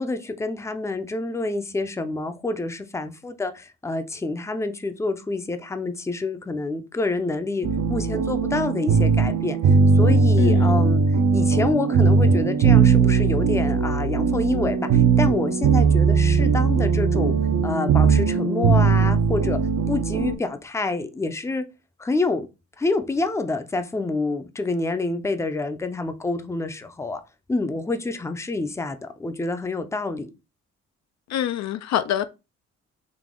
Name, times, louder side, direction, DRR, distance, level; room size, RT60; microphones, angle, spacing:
voice 1, 0.0-9.6 9.9-11.0 11.3-17.3 17.6-19.6 19.9-21.6 22.0-22.5 22.8-27.2 27.5-30.3, left 3 dB, 10° left, 0.5 m, -27 dB
sound 1, 7.6-20.4, right 5 dB, 65° right, 0.7 m, -19 dB
voice 2, 10.4-10.7 31.3-32.3, left 11 dB, 65° left, 0.4 m, -25 dB
4.0 x 2.7 x 3.7 m
cardioid pair, 90°, 30 cm